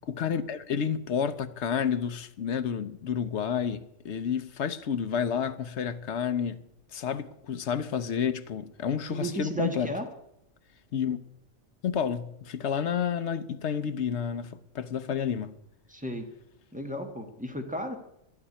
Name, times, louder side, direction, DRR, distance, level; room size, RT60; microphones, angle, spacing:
voice 1, 0.0-6.6 6.9-9.9 10.9-11.2 11.8-15.5, left 7 dB, 60° left, 1.0 m, -30 dB
voice 2, 9.1-10.1 15.9-16.3 16.7-18.0, equal, 5° right, 1.5 m, -34 dB
11.5 x 7.2 x 9.9 m
omnidirectional pair, 1.4 m